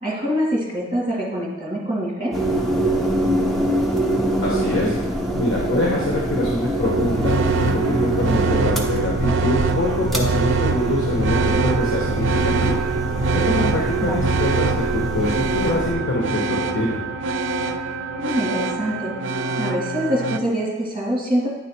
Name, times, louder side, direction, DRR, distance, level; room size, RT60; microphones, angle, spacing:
voice 1, 0.0-2.3 14.0-14.2 18.2-19.1 19.6-21.5, equal, 25° right, -3 dB, 2.0 m, -24 dB
sound 1, 2.3-15.9, equal, ahead, 0.7 m, -25 dB
voice 2, 4.4-4.9 5.4-12.3 12.6-12.8 13.3-17.0, left 1 dB, 80° left, -3 dB, 1.1 m, -24 dB
sound 2, 6.8-20.4, right 4 dB, 65° right, 0.4 m, -23 dB
9.7 x 3.4 x 4.4 m, 1.1 s
head